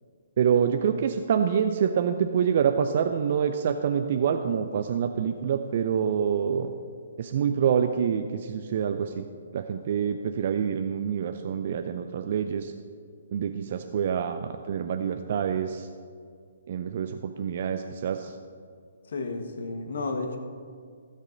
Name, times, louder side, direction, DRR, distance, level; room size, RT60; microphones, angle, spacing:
voice 1, 0.4-6.7 7.2-9.3 9.5-12.7 13.3-15.9 16.7-18.3, right 7 dB, 50° right, 7 dB, 0.5 m, -26 dB
voice 2, 19.1-20.4, left 3 dB, 60° left, 5 dB, 1.3 m, -32 dB
15.5 x 6.6 x 5.2 m, 2.2 s
figure-of-eight pair, 130°, 0 cm